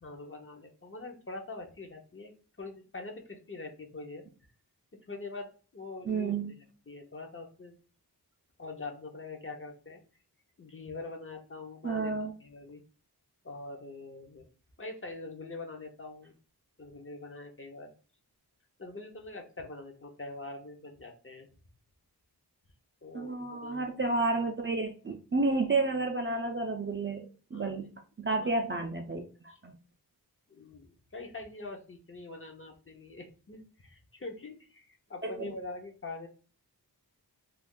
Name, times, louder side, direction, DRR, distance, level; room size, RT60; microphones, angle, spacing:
voice 1, 0.0-4.2 5.1-6.4 6.9-7.8 8.6-10.0 10.6-12.1 12.4-12.8 13.4-14.4 14.8-16.3 16.8-17.9 18.8-21.5 23.0-23.8 27.5-27.9 28.3-28.5 29.5-29.6 30.5-36.3, left 3 dB, 35° left, 2 dB, 0.6 m, -44 dB
voice 2, 6.1-6.5 11.8-12.3 23.1-27.9 28.2-29.7 35.2-35.5, right 3 dB, 30° right, 4 dB, 0.4 m, -31 dB
2.5 x 2.3 x 3.6 m, 0.37 s
wide cardioid pair, 65°, 39 cm